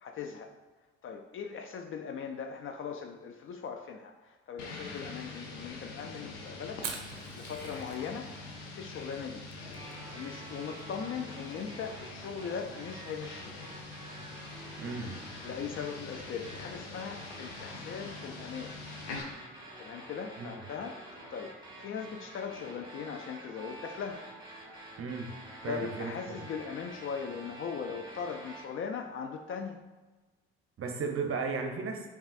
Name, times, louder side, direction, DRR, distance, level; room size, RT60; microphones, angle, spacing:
voice 1, 0.0-0.5 1.0-6.9 7.3-8.3 8.6-9.5 10.1-13.5 15.4-18.8 19.8-24.3 25.6-29.8, left 6 dB, 35° left, 5 dB, 0.4 m, -39 dB
sound 1, 4.6-19.2, left 3 dB, 80° left, 0.7 m, -45 dB
Fire, 6.7-16.5, right 6 dB, 85° right, 0.5 m, -49 dB
sound 2, 9.7-28.6, right 1 dB, 10° right, 1.3 m, -48 dB
voice 2, 14.8-15.2 25.0-25.3 25.6-26.1 30.8-32.0, right 4 dB, 40° right, 3 dB, 0.7 m, -34 dB
5.4 x 2.3 x 2.4 m, 1.2 s
figure-of-eight pair, 45°, 36 cm